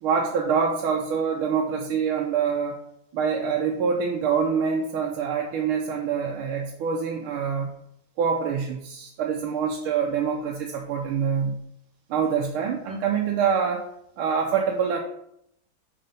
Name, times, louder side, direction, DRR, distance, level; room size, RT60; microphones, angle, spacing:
voice 1, 0.0-2.8 3.1-7.7 8.2-11.6 12.1-13.9 14.2-15.0, right 6 dB, 80° right, 0 dB, 1.5 m, -25 dB
5.6 x 4.2 x 5.3 m, 0.76 s
omnidirectional pair, 2.4 m